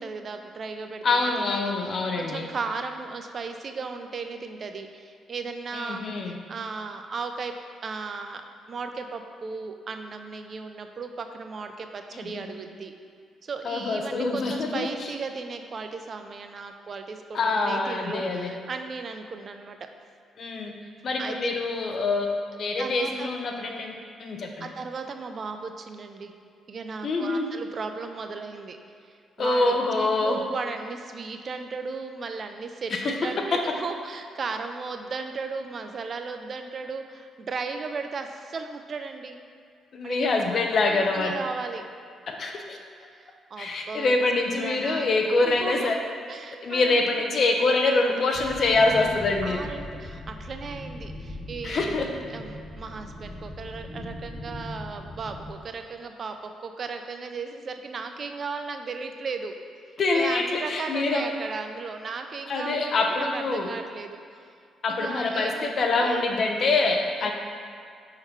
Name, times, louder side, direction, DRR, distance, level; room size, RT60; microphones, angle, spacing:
voice 1, 0.0-7.5 7.8-8.4 8.7-12.9 13.4-19.8 21.2-21.4 22.8-23.3 24.6-26.3 26.7-28.8 29.1-29.7 30.0-39.4 40.0-40.2 40.8-41.8 43.1-45.9 46.3-47.1 49.4-59.6 60.1-64.4 64.9-66.2 67.2-67.3, right 4 dB, 45° right, 6 dB, 0.4 m, -36 dB
voice 2, 1.0-2.5 5.7-6.4 12.1-12.4 13.6-15.1 17.3-18.5 20.4-20.7 21.0-22.3 22.6-23.9 24.2-24.7 27.0-27.5 29.4-30.4 32.9-33.1 39.9-41.3 42.3-42.8 43.6-46.0 46.6-49.7 51.6-52.1 60.0-61.2 62.5-63.7 64.8-67.3, left 3 dB, 50° left, 2 dB, 0.7 m, -25 dB
sound 1, 48.3-55.5, left 1 dB, 10° left, 0.8 m, -39 dB
5.5 x 3.8 x 4.5 m, 2.2 s
cardioid pair, 90°, 0 cm